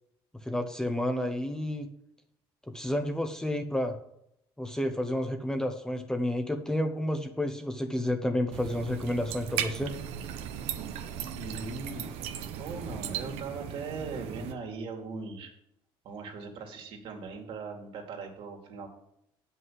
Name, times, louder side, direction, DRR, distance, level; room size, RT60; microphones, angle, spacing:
voice 1, 0.4-1.9 2.7-4.0 4.6-10.0, left 1 dB, 5° left, 6 dB, 0.9 m, -30 dB
sound 1, 8.5-14.5, right 9 dB, 80° right, 1.0 m, -37 dB
voice 2, 11.3-12.1 12.6-15.5 16.0-18.9, right 4 dB, 60° right, 2 dB, 2.4 m, -39 dB
7.9 x 5.6 x 7.4 m, 0.76 s
cardioid pair, 125°, 10 cm